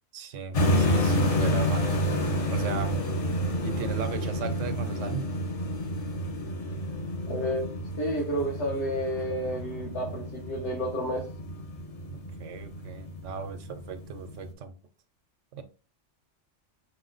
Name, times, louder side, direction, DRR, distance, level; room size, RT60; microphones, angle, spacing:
voice 1, 0.1-2.2 2.5-3.0 3.6-5.3 12.1-14.7 15.5-15.6, right 5 dB, 80° right, 1.0 m, -37 dB
sound 1, 0.5-14.5, equal, 40° left, 0.6 m, -29 dB
voice 2, 7.3-7.6 8.0-11.2, equal, 65° left, 1.3 m, -30 dB
4.8 x 2.2 x 3.8 m
omnidirectional pair, 1.2 m